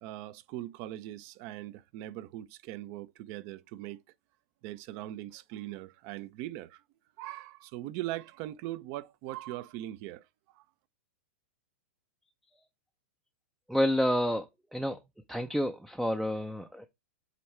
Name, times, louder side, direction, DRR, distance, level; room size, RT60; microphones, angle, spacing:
voice 1, 0.0-4.0 4.6-6.8 7.2-10.2 10.5-10.6, right 15 dB, 45° right, 0.6 m, -40 dB
voice 2, 13.7-14.5 14.7-15.0 15.3-16.9, equal, ahead, 0.5 m, -29 dB
8.2 x 3.2 x 4.4 m
hypercardioid pair, 125°, 7 cm